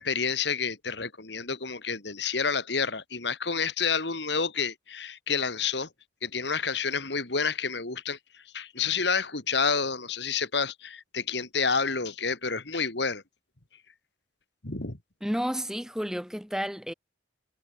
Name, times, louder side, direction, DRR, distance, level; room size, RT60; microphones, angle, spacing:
voice 1, 0.0-5.9 6.2-8.2 8.5-13.2 14.6-15.0, left 5 dB, 65° left, 2.4 m, -29 dB
voice 2, 15.2-16.9, equal, 5° right, 5.6 m, -31 dB
head